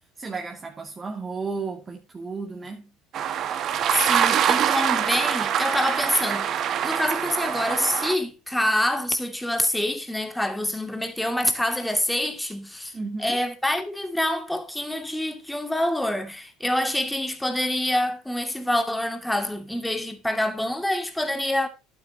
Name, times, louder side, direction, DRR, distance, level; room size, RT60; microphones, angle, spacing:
voice 1, 0.2-2.9 12.9-13.4, right 4 dB, 25° right, 2.4 m, -33 dB
sound 1, 3.1-8.1, right 9 dB, 50° right, 1.8 m, -24 dB
voice 2, 3.9-6.5 6.8-12.9 13.2-21.7, left 1 dB, 5° left, 2.5 m, -26 dB
11.5 x 9.7 x 2.9 m
supercardioid pair, 90°, 0 cm